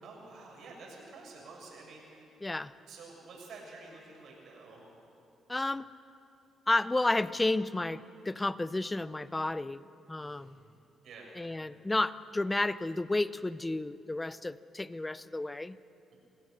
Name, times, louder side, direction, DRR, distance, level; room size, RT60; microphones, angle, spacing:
voice 1, 0.0-2.3 2.9-4.8 10.2-10.6 11.0-11.3 16.1-16.2, right 3 dB, 70° right, -1 dB, 6.9 m, -50 dB
voice 2, 2.4-2.7 5.5-5.9 6.7-9.8 10.1-10.6 11.4-15.8, left 2 dB, 15° left, 16 dB, 0.6 m, -31 dB
27.0 x 17.0 x 6.6 m, 2.8 s
cardioid pair, 90°, 0 cm